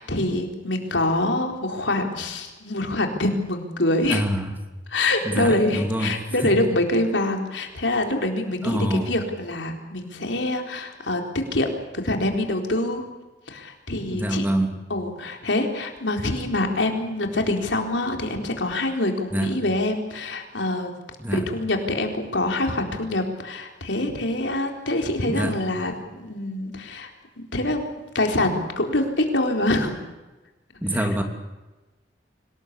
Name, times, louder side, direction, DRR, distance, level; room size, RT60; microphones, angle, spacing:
voice 1, 0.0-4.2 4.9-11.2 11.5-13.0 13.5-14.5 14.9-20.9 21.3-27.1 27.4-27.9 28.1-30.1 31.0-31.1, left 1 dB, 90° left, 3 dB, 4.1 m, -25 dB
voice 2, 4.1-4.5 5.2-6.2 6.4-6.5 8.6-9.1 14.1-14.7 19.3-19.5 21.2-21.4 25.3-25.6 30.8-31.2, right 1 dB, 10° right, 4 dB, 2.8 m, -25 dB
26.0 x 18.5 x 8.4 m, 1.1 s
head